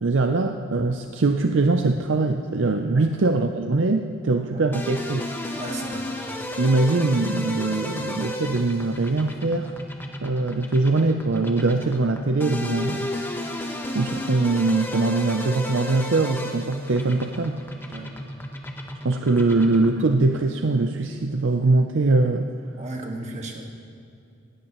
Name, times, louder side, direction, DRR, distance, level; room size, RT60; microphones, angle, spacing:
voice 1, 0.0-5.2 6.6-9.7 10.2-13.1 13.9-17.6 19.0-22.5, right 3 dB, 60° right, 6 dB, 0.6 m, -22 dB
sound 1, 4.7-20.1, left 1 dB, 10° left, 1.0 m, -33 dB
voice 2, 5.6-6.1 17.9-18.1 22.8-23.6, right 2 dB, 35° right, 1 dB, 1.7 m, -35 dB
19.0 x 16.5 x 3.1 m, 2.5 s
head